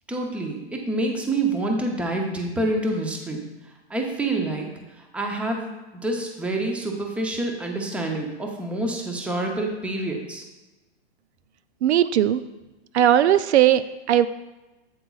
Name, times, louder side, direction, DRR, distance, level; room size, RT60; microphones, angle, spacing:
voice 1, 0.1-3.4 3.9-4.7 5.1-5.7 6.0-10.4, right 2 dB, 5° right, 1 dB, 0.6 m, -27 dB
voice 2, 11.8-12.4 12.9-14.3, right 11 dB, 80° right, 13 dB, 0.5 m, -18 dB
8.0 x 7.7 x 2.4 m, 1.1 s
hypercardioid pair, 140°, 33 cm